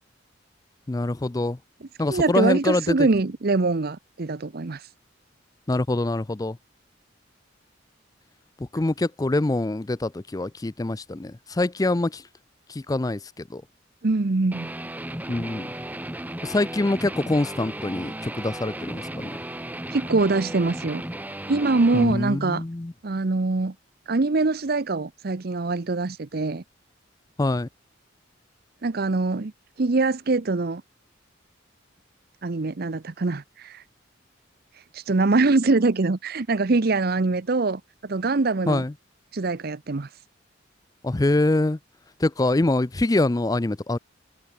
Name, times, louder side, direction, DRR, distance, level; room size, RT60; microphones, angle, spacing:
voice 1, 0.9-1.6 2.0-3.1 5.7-6.6 8.6-12.3 12.7-13.6 15.3-15.7 16.4-19.3 21.9-22.9 27.4-27.7 38.7-38.9 41.0-41.8 42.2-44.0, left 2 dB, 20° left, 0.5 m, -25 dB
voice 2, 2.1-4.9 14.0-14.7 19.9-21.0 21.5-22.6 23.0-23.7 24.1-26.6 28.8-29.5 29.8-30.8 32.4-33.8 34.9-38.8 39.3-40.1, right 3 dB, 50° right, 0.7 m, -23 dB
Guitar, 14.5-22.1, right 1 dB, 10° right, 1.4 m, -35 dB
head